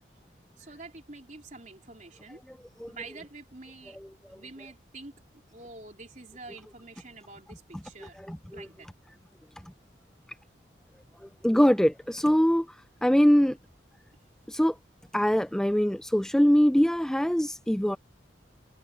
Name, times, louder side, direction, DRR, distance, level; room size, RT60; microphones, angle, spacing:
voice 1, 0.6-2.4 2.9-4.0 4.3-5.1 5.5-8.2 8.5-8.9, right 3 dB, 40° right, 3.8 m, -46 dB
voice 2, 8.3-8.7 11.4-12.7 13.0-13.6 14.5-14.8 15.1-18.0, equal, 5° left, 0.3 m, -23 dB
head